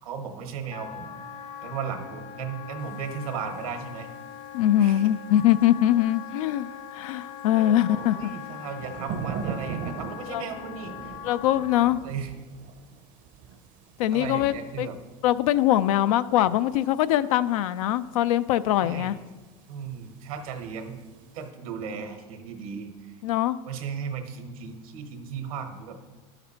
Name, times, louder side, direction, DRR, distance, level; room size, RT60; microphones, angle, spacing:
voice 1, 0.0-1.2 1.6-4.1 4.8-5.0 7.5-11.2 12.0-12.3 14.1-15.0 18.8-19.1 19.7-21.0 21.3-23.2 23.6-26.0, right 6 dB, 85° right, 5 dB, 1.1 m, -36 dB
Wind instrument woodwind instrument, 0.7-12.0, left 9 dB, 35° left, 0.6 m, -41 dB
sound 1, 2.9-4.2 4.6-4.7 5.4-6.7 7.1-21.5, right 7 dB, 50° right, 0.6 m, -42 dB
voice 2, 4.5-8.3 10.3-10.4 11.2-12.0 14.0-14.9 15.2-19.2 23.2-23.6, left 12 dB, 80° left, 15 dB, 0.4 m, -23 dB
12.0 x 5.9 x 2.9 m, 1.3 s
supercardioid pair, 105°, 18 cm